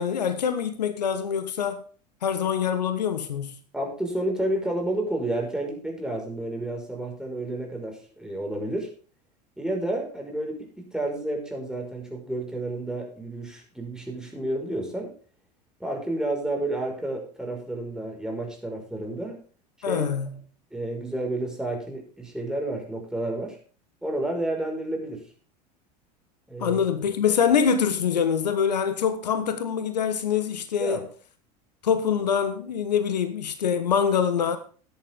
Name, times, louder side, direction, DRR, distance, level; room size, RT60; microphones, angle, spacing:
voice 1, 0.0-1.8 2.2-3.6 19.8-20.3 26.6-31.0 31.8-34.6, left 7 dB, 80° left, 1.4 m, -24 dB
voice 2, 3.7-8.9 9.6-15.1 15.8-19.4 19.9-20.1 20.7-23.6 24.0-25.2 26.5-26.8 30.8-31.0, right 1 dB, 5° right, 5.8 m, -30 dB
14.0 x 10.5 x 3.8 m
figure-of-eight pair, 80°, 21 cm